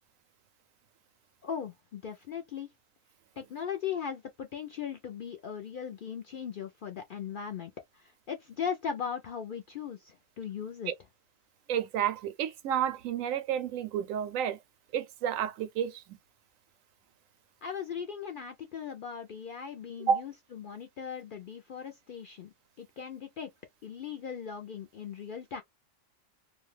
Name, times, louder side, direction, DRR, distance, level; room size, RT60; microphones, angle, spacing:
voice 1, 1.4-2.7 3.4-10.9 17.6-23.5 23.8-25.6, left 7 dB, 65° left, 0.5 m, -38 dB
voice 2, 11.7-14.6 14.9-16.2 20.1-20.2, right 8 dB, 90° right, 1.0 m, -30 dB
2.5 x 2.2 x 3.1 m
omnidirectional pair, 1.3 m